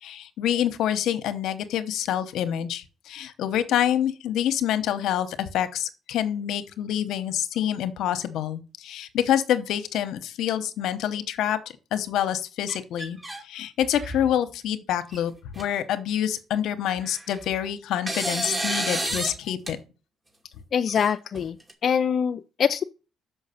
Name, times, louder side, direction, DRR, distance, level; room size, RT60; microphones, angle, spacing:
voice 1, 0.0-11.6 11.9-19.8, left 10 dB, 80° left, 0.8 m, -27 dB
sound 1, 12.7-13.4 13.8-14.3 15.1-15.2 15.5-15.6 17.0-17.5 18.1-19.4 19.7-19.8 20.9-21.7, right 1 dB, 20° right, 2.3 m, -30 dB
voice 2, 20.7-21.6 21.8-22.8, left 7 dB, 55° left, 0.4 m, -24 dB
6.4 x 5.5 x 5.7 m
cardioid pair, 90°, 0 cm